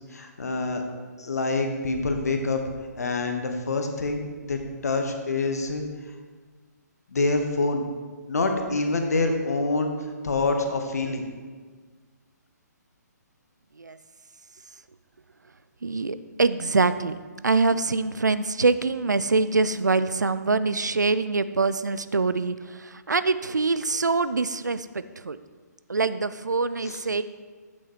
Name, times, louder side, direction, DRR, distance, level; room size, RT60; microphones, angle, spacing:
voice 1, 0.1-0.8 1.2-2.6 3.0-5.8 7.1-7.8 8.3-9.9 10.2-11.2 26.8-27.0, left 3 dB, 60° left, 4 dB, 1.1 m, -26 dB
voice 2, 15.8-17.2 17.4-22.5 22.8-25.4 25.9-27.2, right 3 dB, 75° right, 13 dB, 0.4 m, -24 dB
8.4 x 6.3 x 4.5 m, 1.5 s
figure-of-eight pair, 130°, 10 cm